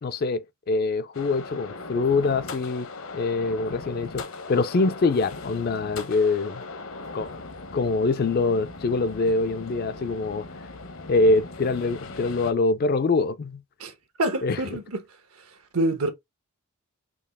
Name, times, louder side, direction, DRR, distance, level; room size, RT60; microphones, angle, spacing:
voice 1, 0.0-2.9 3.1-6.6 7.1-7.4 7.7-10.5 11.1-13.6 14.4-14.6, left 3 dB, 45° left, 0.4 m, -24 dB
sound 1, 1.1-12.5, left 3 dB, 70° left, 0.8 m, -39 dB
voice 2, 14.2-15.0 15.7-16.1, right 1 dB, 80° right, 1.2 m, -26 dB
4.7 x 2.9 x 3.4 m
head